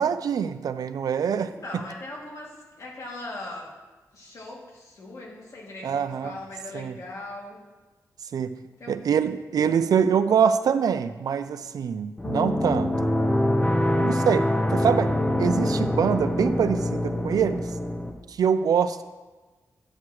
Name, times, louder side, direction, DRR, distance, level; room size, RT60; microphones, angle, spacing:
voice 1, 0.0-1.8 5.8-6.4 6.7-7.0 8.3-8.6 8.9-13.1 14.0-15.1 15.4-17.7 18.3-19.0, right 7 dB, 80° right, 12 dB, 0.5 m, -24 dB
voice 2, 1.4-3.7 4.1-7.6 8.8-9.0 14.1-14.4, left 2 dB, 60° left, -3 dB, 2.6 m, -40 dB
sound 1, 12.2-18.1, left 1 dB, 15° left, 0.9 m, -24 dB
12.5 x 8.7 x 3.2 m, 1.2 s
wide cardioid pair, 125°, 6 cm